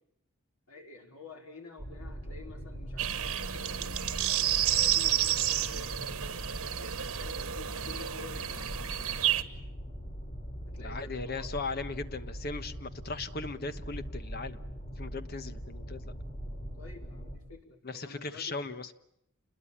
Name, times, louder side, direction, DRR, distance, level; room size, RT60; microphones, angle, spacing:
voice 1, 0.7-6.0 6.8-9.4 10.6-11.5 16.8-18.6, left 3 dB, 80° left, 2 dB, 4.8 m, -50 dB
sound 1, 1.8-17.4, equal, 30° left, 3.1 m, -41 dB
sound 2, 3.0-9.4, right 11 dB, 90° right, 1.3 m, -30 dB
voice 2, 10.8-14.6 15.0-16.0 17.8-18.9, left 3 dB, 45° left, 11 dB, 1.2 m, -38 dB
29.0 x 21.5 x 8.8 m, 0.79 s
head